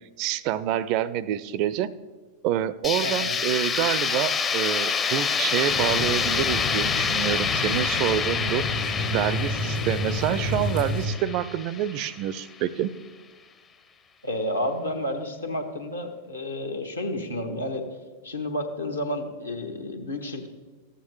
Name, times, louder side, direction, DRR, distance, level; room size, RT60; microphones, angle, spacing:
voice 1, 0.2-1.9 2.4-8.7 9.1-12.9, right 11 dB, 45° right, 18 dB, 0.4 m, -27 dB
sound 1, 2.8-12.6, left 6 dB, 25° left, 0.6 m, -27 dB
voice 2, 3.0-3.4 14.2-17.9 18.2-20.5, left 1 dB, 80° left, 3 dB, 1.2 m, -31 dB
sound 2, 5.7-11.1, left 2 dB, 60° left, 1.6 m, -30 dB
14.0 x 9.0 x 3.2 m, 1.4 s
figure-of-eight pair, 90°, 0 cm